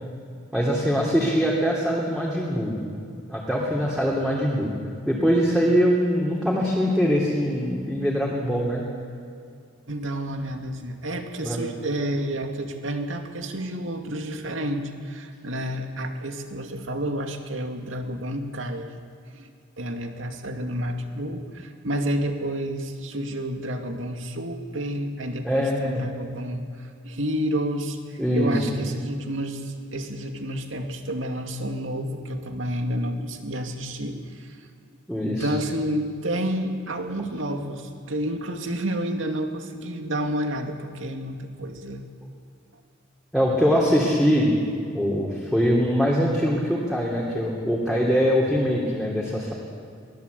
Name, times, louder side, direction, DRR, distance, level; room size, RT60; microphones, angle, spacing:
voice 1, 0.5-2.7 3.3-4.7 5.1-8.8 11.4-11.6 25.4-26.0 28.2-28.6 35.1-35.5 43.3-44.5 44.9-49.5, equal, ahead, -4 dB, 2.9 m, -22 dB
voice 2, 9.9-18.9 19.3-19.5 19.8-34.6 35.3-42.1, right 1 dB, 85° right, 4 dB, 2.4 m, -30 dB
23.5 x 18.5 x 8.3 m, 2.4 s
head